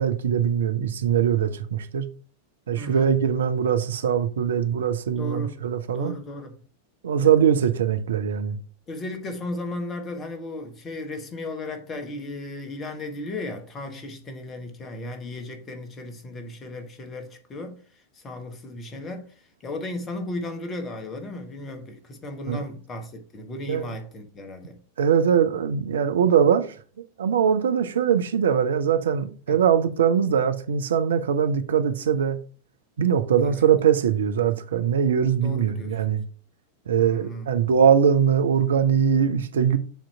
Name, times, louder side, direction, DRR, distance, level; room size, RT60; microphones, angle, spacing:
voice 1, 0.0-2.1 2.7-6.2 7.0-8.6 22.5-22.6 23.7-23.9 25.0-26.7 27.2-32.4 33.0-36.2 36.9-39.8, right 8 dB, 65° right, 0.6 m, -21 dB
voice 2, 2.7-3.1 5.2-5.6 5.9-6.5 7.2-7.3 8.9-24.8 29.5-29.6 33.4-33.6 35.4-36.2 37.0-37.5, left 2 dB, 25° left, 1.3 m, -35 dB
7.2 x 3.0 x 5.5 m
figure-of-eight pair, 90°, 0 cm